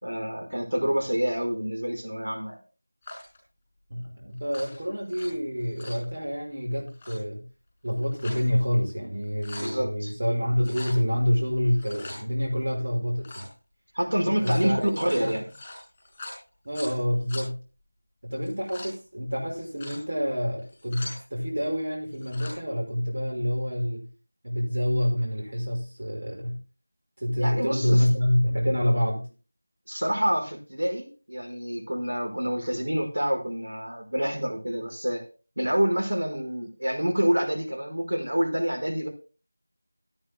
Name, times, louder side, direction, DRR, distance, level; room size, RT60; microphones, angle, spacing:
voice 1, 0.0-2.6 9.0-9.1 9.6-10.1 13.9-15.4 27.4-28.1 29.9-35.2 35.6-39.1, equal, 70° right, 2 dB, 5.1 m, -27 dB
sound 1, 3.0-3.4 4.4-5.3 5.6-6.0 6.9-7.2 7.9-8.5 8.9-9.0 9.2-9.8 10.6-11.0 11.6-12.2 13.2-13.5 14.2-16.9 17.3-17.4 18.3-18.9 19.6-20.0 20.6-21.2 22.1-22.6, left 1 dB, 15° left, 5.7 m, -42 dB
voice 2, 3.9-7.5 7.8-13.5 14.4-15.4 16.6-17.6 18.2-24.1 24.4-26.6 27.2-29.2, equal, 50° right, -1 dB, 5.8 m, -27 dB
24.0 x 9.7 x 2.2 m, 0.34 s
figure-of-eight pair, 170°, 0 cm